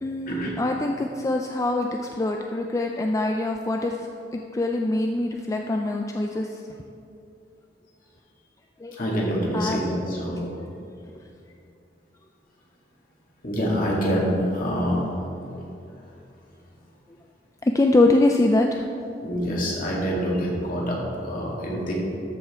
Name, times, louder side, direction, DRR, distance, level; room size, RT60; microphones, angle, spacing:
voice 1, 0.0-6.6 8.8-9.0 9.5-9.8 15.5-15.7 17.6-18.8, left 2 dB, 20° left, 2 dB, 0.4 m, -24 dB
voice 2, 9.0-10.4 13.4-15.0 19.2-21.9, equal, 50° left, -4 dB, 2.3 m, -26 dB
13.0 x 5.8 x 4.4 m, 2.7 s
head